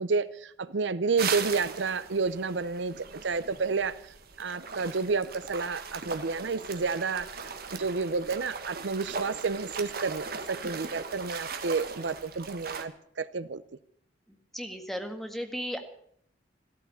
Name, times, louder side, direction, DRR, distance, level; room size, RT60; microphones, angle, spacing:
voice 1, 0.0-3.9 4.4-13.6, right 4 dB, 75° right, 16 dB, 0.7 m, -30 dB
sound 1, 1.2-12.8, right 5 dB, 55° right, 1.5 m, -39 dB
voice 2, 14.5-15.8, equal, ahead, 5 dB, 1.7 m, -35 dB
14.5 x 13.5 x 7.0 m, 0.66 s
head